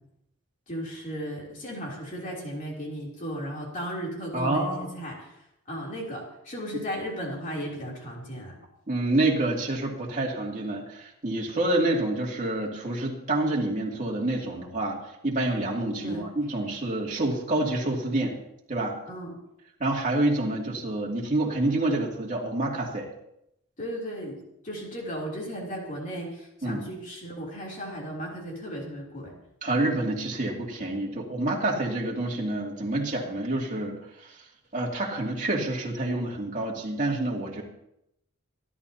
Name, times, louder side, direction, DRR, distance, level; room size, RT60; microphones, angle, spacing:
voice 1, 0.7-5.3 5.7-8.6 16.0-16.3 19.1-19.3 23.8-29.4, equal, 35° left, -2 dB, 3.1 m, -35 dB
voice 2, 4.3-5.0 8.9-18.4 18.7-19.0 19.8-23.1 26.6-26.8 29.6-34.4 34.7-37.6, right 2 dB, 35° right, -2 dB, 2.6 m, -28 dB
25.5 x 11.5 x 2.8 m, 0.80 s
head